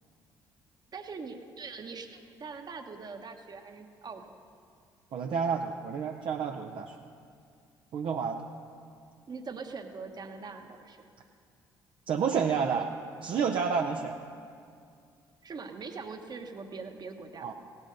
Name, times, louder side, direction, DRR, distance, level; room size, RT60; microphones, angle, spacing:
voice 1, 0.9-4.3 9.3-11.1 13.3-13.6 15.4-17.5, right 4 dB, 45° right, 6 dB, 1.2 m, -42 dB
voice 2, 5.1-6.9 7.9-8.4 12.1-12.9 13.2-14.2 17.4-17.5, right 6 dB, 60° right, 2 dB, 0.7 m, -29 dB
16.5 x 8.2 x 5.2 m, 2.3 s
hypercardioid pair, 55°, 10 cm